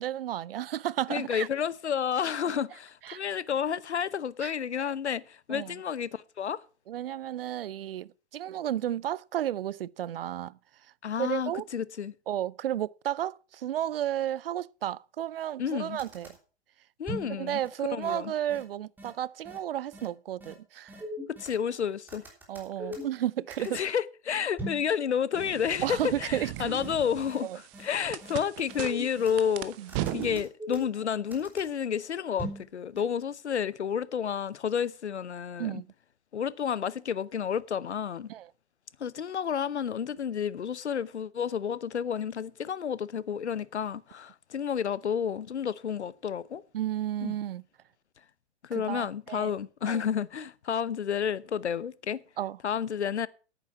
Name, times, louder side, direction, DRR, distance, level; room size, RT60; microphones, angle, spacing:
voice 1, 0.0-1.5 3.0-3.2 4.4-4.5 5.5-5.8 6.9-10.6 11.2-11.7 12.3-16.4 17.3-20.9 22.5-23.8 25.8-26.7 27.4-27.6 29.8-29.9 35.6-35.9 38.3-38.5 46.7-47.6 48.7-49.5 49.9-50.0 52.4-52.6, right 11 dB, 55° right, 0.5 m, -33 dB
voice 2, 1.1-6.6 11.0-12.1 15.6-16.0 17.0-17.6 17.9-18.3 21.4-22.2 23.7-27.5 27.8-29.8 30.1-35.8 36.3-38.3 39.0-46.6 47.2-47.3 48.7-52.2 52.6-53.3, left 8 dB, 75° left, 0.8 m, -30 dB
sound 1, 15.6-15.7 16.0-16.3 17.1-17.3 17.6-17.7 18.0-18.1 18.5-18.6 19.0-19.1 19.4-19.6 19.9-20.1 20.4-20.5 20.9-21.6 22.1-23.2 23.5-23.9 24.6-24.9 25.4-25.5 25.8-25.9 26.3-26.4 26.8-26.9 27.3-27.4 27.7-27.9 28.2-28.3 28.7-29.4 29.9-31.0 31.3-31.7 32.4-32.7 33.0-33.1, equal, 5° right, 3.3 m, -39 dB
sound 2, 25.3-30.4, right 14 dB, 30° right, 0.8 m, -38 dB
10.5 x 9.1 x 5.7 m
figure-of-eight pair, 115°, 34 cm